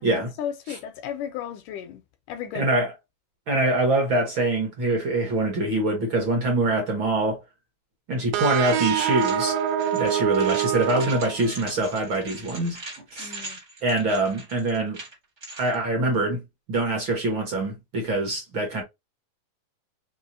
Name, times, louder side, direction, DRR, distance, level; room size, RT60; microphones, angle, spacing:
voice 1, 0.0-2.0 2.3-2.7 13.2-13.6, left 9 dB, 80° left, 2.0 m, -34 dB
voice 2, 2.5-2.9 3.5-7.4 8.1-9.6 9.9-12.8 13.1-13.3 13.8-15.0 15.6-16.4 16.7-18.8, right 2 dB, 60° right, 1.3 m, -24 dB
sound 1, 8.3-11.9, right 10 dB, 85° right, 2.5 m, -26 dB
sound 2, 8.9-15.7, right 2 dB, 40° right, 0.9 m, -41 dB
5.4 x 2.8 x 2.7 m
omnidirectional pair, 4.0 m